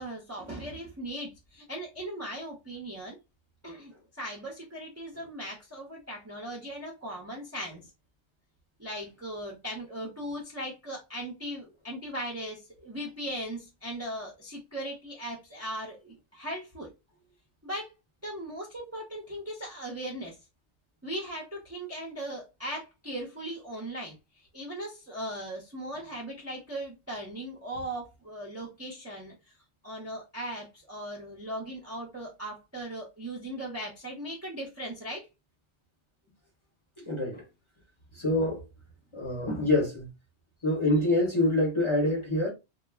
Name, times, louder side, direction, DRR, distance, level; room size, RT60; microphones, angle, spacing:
voice 1, 0.0-3.2 3.6-7.9 8.8-16.9 17.6-17.9 18.2-20.4 21.0-29.6 29.8-35.3, right 1 dB, 20° right, 0.5 m, -38 dB
voice 2, 37.0-37.4 38.1-38.6 39.1-40.1 40.6-42.5, left 1 dB, 30° left, 0.8 m, -26 dB
2.2 x 2.1 x 3.3 m
omnidirectional pair, 1.2 m